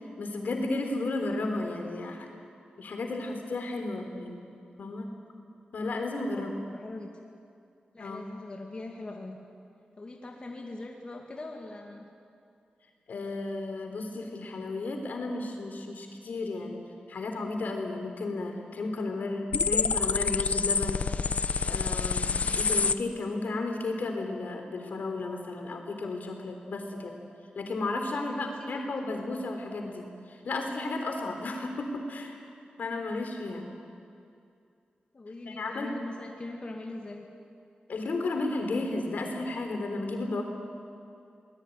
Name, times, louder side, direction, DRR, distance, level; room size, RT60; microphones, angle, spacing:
voice 1, 0.2-2.3 2.8-4.5 4.8-5.1 5.7-6.5 8.0-8.2 13.1-16.8 17.1-21.0 21.6-27.2 27.6-32.4 32.8-33.7 35.5-36.0 37.9-40.4, left 2 dB, 70° left, 4 dB, 3.6 m, -33 dB
voice 2, 6.2-7.1 7.9-9.4 10.0-12.0 28.1-28.4 35.1-37.3, left 2 dB, 35° left, 0 dB, 2.3 m, -42 dB
sound 1, 19.5-22.9, left 5 dB, 55° left, 0.8 m, -27 dB
23.5 x 20.0 x 9.5 m, 2.4 s
wide cardioid pair, 135°, 3 cm